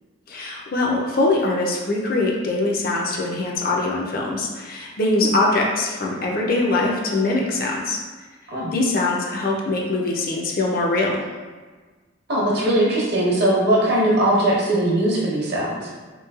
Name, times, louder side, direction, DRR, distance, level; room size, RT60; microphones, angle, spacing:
voice 1, 0.3-8.0 8.7-11.2, left 2 dB, 45° left, -2 dB, 0.4 m, -22 dB
voice 2, 12.3-15.9, right 1 dB, 55° right, -5 dB, 0.8 m, -20 dB
3.1 x 3.0 x 2.3 m, 1.4 s
head